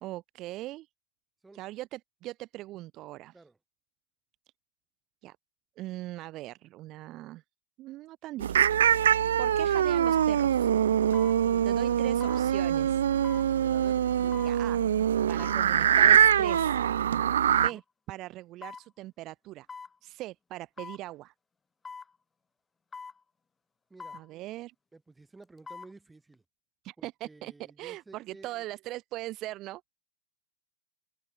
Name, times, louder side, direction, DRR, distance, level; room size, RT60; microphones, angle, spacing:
voice 1, 0.0-0.9 1.5-3.4 5.2-5.4 5.8-7.4 7.8-8.7 9.4-10.7 11.6-13.0 14.4-14.8 15.3-16.8 17.5-17.8 18.1-19.7 20.0-21.3 24.1-24.7 26.8-29.9, right 17 dB, 35° right, 2.7 m, -40 dB
sound 1, 8.4-17.7, right 9 dB, 80° right, 0.4 m, -24 dB
sound 2, 8.9-9.1 10.1-10.3 11.1-11.4 12.2-12.5 13.2-13.5 14.3-14.6 15.4-15.6 16.5-16.7 17.5-17.8 18.6-18.9 19.7-19.9 20.8-21.0 21.8-22.1 22.9-23.2 24.0-24.3 25.4-25.9 26.3-26.4, left 5 dB, 15° left, 1.4 m, -43 dB
voice 2, 11.4-12.1 13.5-14.4 17.6-17.8 23.9-24.2 24.9-26.4 27.0-28.6, right 3 dB, 10° right, 7.3 m, -53 dB
open air
hypercardioid pair, 130°, 0 cm